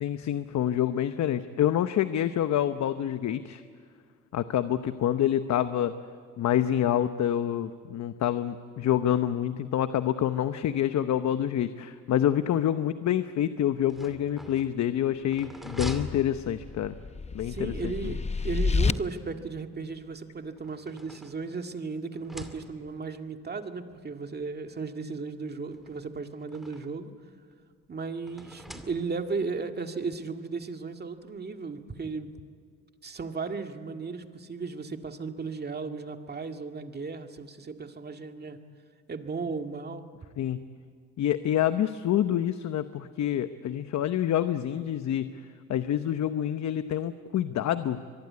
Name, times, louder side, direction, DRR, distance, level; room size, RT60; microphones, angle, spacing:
voice 1, 0.0-3.6 4.3-5.9 6.4-16.9 17.3-18.1 40.4-40.7 41.2-45.4 45.7-48.0, left 11 dB, 65° left, 11 dB, 0.9 m, -27 dB
sound 1, 13.7-17.1 18.4-19.5 20.4-21.8 22.1-23.1 24.0-24.1 24.4-24.5 25.7-27.1 28.3-29.4, left 1 dB, ahead, 2.5 m, -44 dB
sound 2, 16.2-18.9, left 4 dB, 20° left, 0.7 m, -29 dB
voice 2, 17.4-27.1 27.9-32.3 33.0-38.6 39.1-40.1 40.3-40.4, right 4 dB, 35° right, 5 dB, 1.9 m, -35 dB
24.5 x 22.5 x 9.6 m, 2.1 s
cardioid pair, 90°, 30 cm